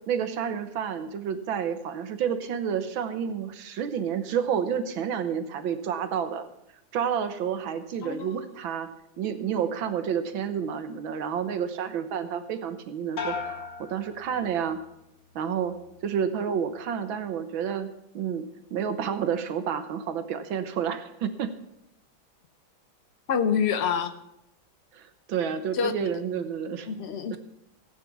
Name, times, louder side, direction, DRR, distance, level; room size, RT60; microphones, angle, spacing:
voice 1, 0.1-6.5 6.9-8.9 9.2-14.8 15.4-15.7 16.0-18.5 18.7-21.5 24.9-25.0 25.3-26.9 27.3-27.4, right 7 dB, 75° right, 1.8 m, -30 dB
voice 2, 8.0-8.5 23.3-24.1 25.7-25.9 26.9-27.4, left 7 dB, 75° left, 0.5 m, -26 dB
sound 1, 13.2-14.9 15.3-15.9, left 5 dB, 60° left, 2.3 m, -37 dB
16.0 x 8.7 x 6.0 m
omnidirectional pair, 2.2 m